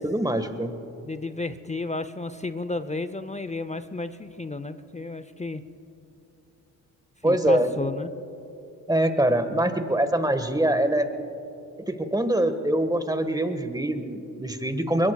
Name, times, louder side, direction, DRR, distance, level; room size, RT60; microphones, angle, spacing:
voice 1, 0.0-0.7 7.2-7.7 8.9-11.1 11.9-15.1, right 1 dB, 10° right, 9 dB, 1.5 m, -24 dB
voice 2, 1.0-5.6 7.2-8.1, left 3 dB, 15° left, 12 dB, 0.7 m, -32 dB
25.0 x 21.5 x 2.4 m, 2.9 s
hypercardioid pair, 45°, 42 cm